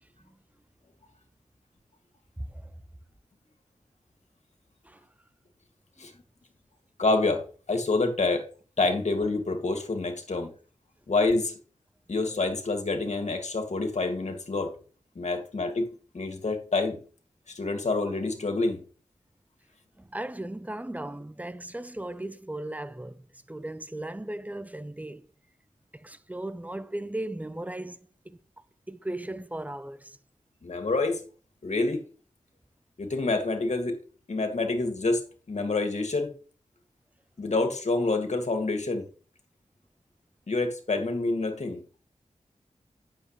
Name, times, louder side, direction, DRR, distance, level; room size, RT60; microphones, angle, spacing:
voice 1, 7.0-8.5 8.8-10.5 11.1-11.5 12.1-14.7 15.2-15.9 16.1-17.0 17.5-18.8 30.6-31.2 31.6-32.0 33.0-34.0 34.3-35.2 35.5-36.3 37.4-39.1 40.5-41.8, left 3 dB, 60° left, 2.4 m, -27 dB
voice 2, 20.0-25.3 25.9-28.0 28.3-28.4 28.9-30.2, right 1 dB, 10° right, 0.8 m, -37 dB
9.7 x 7.4 x 3.3 m
cardioid pair, 50°, 13 cm